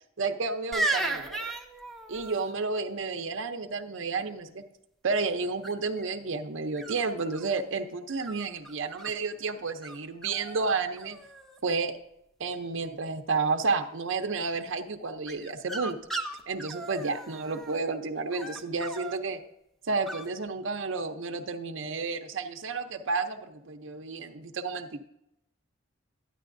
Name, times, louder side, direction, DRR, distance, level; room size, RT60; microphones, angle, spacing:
voice 1, 0.2-1.4 2.1-4.6 5.0-11.2 11.6-11.9 12.4-16.0 16.5-19.4 19.9-25.1, right 4 dB, 70° right, 5 dB, 0.7 m, -31 dB
sound 1, 0.7-2.5 5.6-6.0 6.8-7.6 8.2-9.1 9.8-10.0 10.2-10.7 11.0-11.6 15.3-17.8 18.3-19.2 20.1-20.3, right 2 dB, ahead, 0.8 m, -35 dB
12.5 x 10.0 x 2.6 m, 0.82 s
head